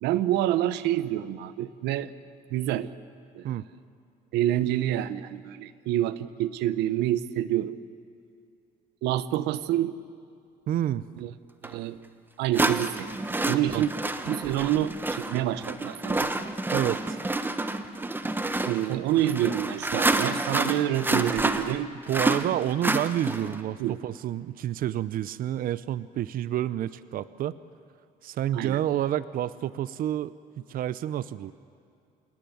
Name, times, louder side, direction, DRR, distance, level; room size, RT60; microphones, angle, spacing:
voice 1, 0.0-2.1 2.5-2.9 3.3-3.4 4.3-7.7 9.0-9.9 11.2-11.3 11.6-12.0 12.4-13.1 13.5-13.9 14.3-16.3 18.6-21.9 23.8-24.0 28.5-28.8, right 12 dB, 90° right, 15 dB, 0.9 m, -27 dB
voice 2, 10.7-11.0 13.7-13.8 16.7-17.2 18.9-19.0 22.1-27.6 28.2-31.5, right 12 dB, 60° right, 16 dB, 0.6 m, -29 dB
sound 1, 11.6-11.7 12.5-23.6, right 2 dB, 10° right, 1.2 m, -28 dB
28.0 x 17.5 x 9.5 m, 2.5 s
cardioid pair, 110°, 17 cm